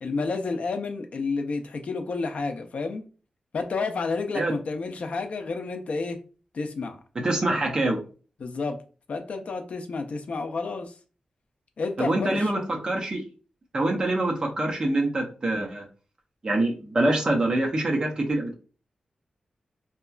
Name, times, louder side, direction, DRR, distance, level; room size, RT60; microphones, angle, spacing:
voice 1, 0.0-3.0 3.5-6.2 6.5-7.0 8.4-8.8 9.1-10.9 11.8-12.5, left 4 dB, 60° left, 6 dB, 0.4 m, -30 dB
voice 2, 7.2-8.0 12.0-13.3 13.7-15.9 16.4-18.5, right 2 dB, 30° right, 1 dB, 0.6 m, -25 dB
2.8 x 2.3 x 2.3 m, 0.36 s
wide cardioid pair, 170°, 2 cm